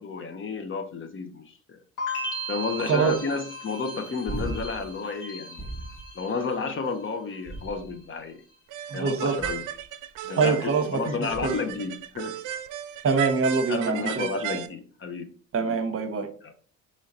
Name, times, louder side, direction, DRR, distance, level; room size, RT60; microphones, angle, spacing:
voice 1, 0.0-1.8 2.5-5.6 6.1-8.4 8.9-9.6 10.2-12.4 13.7-15.3 16.4-16.5, left 4 dB, 40° left, 0.7 m, -31 dB
sound 1, 2.0-7.0 7.3-7.9, equal, 85° left, 1.3 m, -37 dB
sound 2, 4.3-4.9 5.6-6.1 7.4-8.2 9.4-9.8 11.3-11.7 14.1-14.2, right 2 dB, 10° left, 0.7 m, -37 dB
sound 3, 8.7-14.7, right 10 dB, 80° right, 0.5 m, -35 dB
voice 2, 8.9-9.3 10.4-11.6 13.0-14.3 15.5-16.3, right 5 dB, 50° right, 0.8 m, -24 dB
3.8 x 3.1 x 4.1 m
cardioid pair, 90°, 30 cm